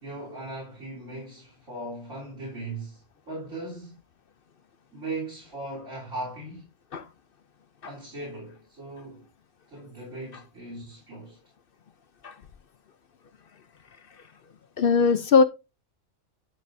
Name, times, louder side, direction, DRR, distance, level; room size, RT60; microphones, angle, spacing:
voice 1, 0.0-4.0 4.9-6.7 7.8-9.2 9.7-11.4, right 2 dB, 85° right, 3.9 m, -38 dB
voice 2, 14.8-15.4, left 5 dB, 55° left, 0.7 m, -19 dB
10.5 x 6.9 x 2.6 m
omnidirectional pair, 1.3 m